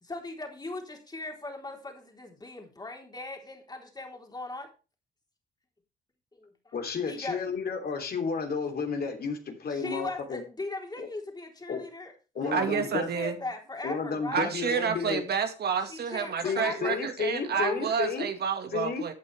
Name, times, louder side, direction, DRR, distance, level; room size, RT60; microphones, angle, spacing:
voice 1, 0.0-4.7 6.4-6.7 7.0-7.5 9.7-12.1 12.4-14.5 15.9-17.0 17.4-17.9, left 2 dB, 20° left, 2 dB, 3.9 m, -39 dB
voice 2, 6.7-10.4 11.0-11.1 11.7-11.8 12.3-13.1 13.8-15.2 16.4-18.3 18.7-19.0, left 5 dB, 50° left, 4 dB, 3.2 m, -32 dB
voice 3, 12.5-13.4 14.3-19.1, right 6 dB, 55° right, 7 dB, 2.0 m, -29 dB
14.0 x 8.6 x 3.5 m, 0.31 s
cardioid pair, 90°, 20 cm